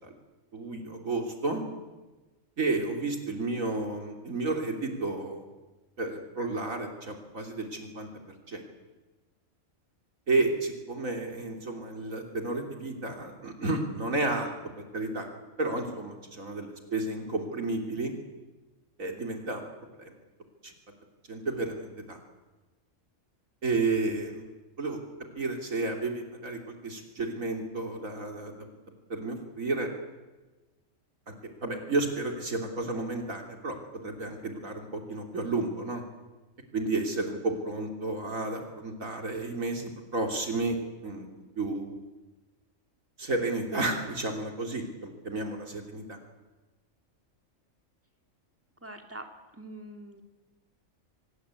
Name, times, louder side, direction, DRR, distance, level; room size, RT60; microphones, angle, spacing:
voice 1, 0.5-1.6 2.6-5.4 6.0-8.1 8.5-8.6 10.3-14.5 14.9-15.3 15.6-18.1 19.0-19.6 20.0-20.1 20.6-20.7 21.3-22.2 23.6-24.4 24.8-25.0 25.4-28.5 29.1-29.9 31.3-31.4 31.6-33.8 34.0-36.0 36.7-40.8 41.0-41.3 41.6-41.9 43.2-46.2, right 2 dB, 75° right, 3 dB, 3.5 m, -31 dB
voice 2, 48.8-49.2 49.5-50.2, right 1 dB, 10° right, 4 dB, 3.0 m, -43 dB
25.0 x 22.0 x 8.4 m, 1.2 s
omnidirectional pair, 1.4 m